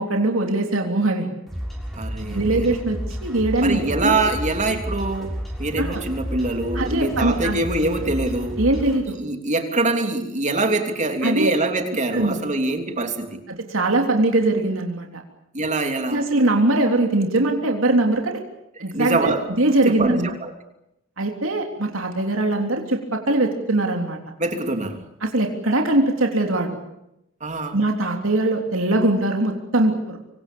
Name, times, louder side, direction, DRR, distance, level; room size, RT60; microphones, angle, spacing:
voice 1, 0.0-1.3 2.2-4.2 5.8-6.0 6.7-7.6 8.6-9.2 11.2-11.5 12.1-12.4 13.6-15.2 16.1-18.4 18.8-20.3 21.2-24.2 25.2-26.8 27.7-30.2, right 2 dB, 70° right, 3 dB, 3.4 m, -21 dB
sound 1, 1.5-9.0, equal, ahead, 6.8 m, -31 dB
voice 2, 2.0-2.8 3.6-8.6 9.2-13.4 15.5-16.3 18.8-19.5 19.9-20.5 24.4-25.0 27.4-27.8, right 2 dB, 35° right, 5 dB, 3.0 m, -24 dB
26.0 x 25.0 x 7.0 m, 0.86 s
head